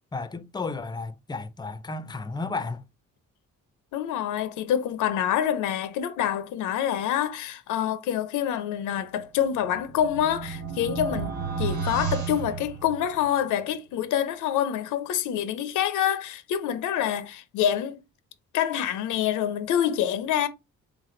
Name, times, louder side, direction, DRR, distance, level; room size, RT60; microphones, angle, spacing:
voice 1, 0.1-2.9, left 3 dB, 15° left, 0.5 m, -33 dB
voice 2, 3.9-18.0 18.5-20.5, left 10 dB, 85° left, 0.6 m, -26 dB
sound 1, 9.4-13.4, right 6 dB, 70° right, 1.3 m, -32 dB
3.7 x 3.2 x 3.7 m
cardioid pair, 90°, 30 cm